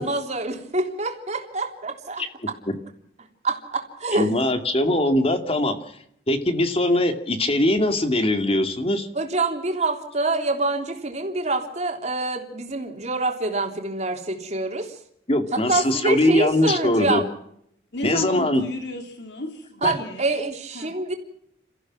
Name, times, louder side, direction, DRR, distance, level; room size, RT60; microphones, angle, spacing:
voice 1, 0.0-2.2 3.4-4.3 9.1-15.0 15.5-17.3 19.8-21.1, right 2 dB, 40° right, 4 dB, 3.4 m, -26 dB
voice 2, 4.1-5.8 6.3-9.1 15.3-17.2 18.0-18.6 19.8-19.9, left 1 dB, 35° left, 7 dB, 2.3 m, -21 dB
voice 3, 17.9-20.4 20.7-20.9, left 2 dB, 70° left, 4 dB, 3.5 m, -33 dB
29.5 x 15.0 x 6.1 m, 0.71 s
head